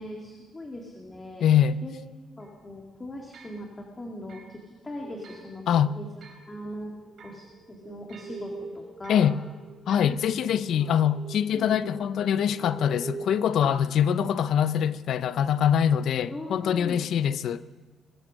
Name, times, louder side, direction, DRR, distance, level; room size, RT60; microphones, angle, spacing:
voice 1, 0.0-1.4 1.8-2.0 2.4-5.6 6.0-6.1 6.5-6.9 7.2-7.4 7.7-9.3 10.0-10.2 11.5-11.7 14.3-14.4 16.3-17.0, left 1 dB, 25° left, 2.4 m, -40 dB
voice 2, 1.4-1.8 5.7-5.9 9.1-9.3 9.9-17.6, left 9 dB, 70° left, 0.6 m, -24 dB
sound 1, 1.7-1.8 2.4-2.5 3.3-3.6 4.3-4.5 5.2-5.5 6.2-6.5 7.2-7.4 8.1-8.4 9.0-9.3 9.9-10.2, right 4 dB, 60° right, 4.0 m, -51 dB
sound 2, 4.9-13.5, right 3 dB, 80° right, 2.3 m, -44 dB
22.0 x 9.0 x 6.5 m
cardioid pair, 90°, 0 cm